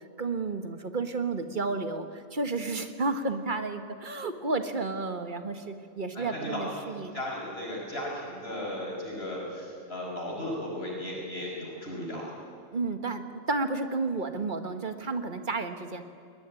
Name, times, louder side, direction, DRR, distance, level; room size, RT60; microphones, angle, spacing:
voice 1, 0.2-7.2 12.7-16.0, right 3 dB, 50° right, 8 dB, 1.6 m, -32 dB
voice 2, 6.1-12.3, left 1 dB, 70° left, -2 dB, 5.8 m, -36 dB
21.0 x 20.0 x 9.8 m, 2.5 s
omnidirectional pair, 1.1 m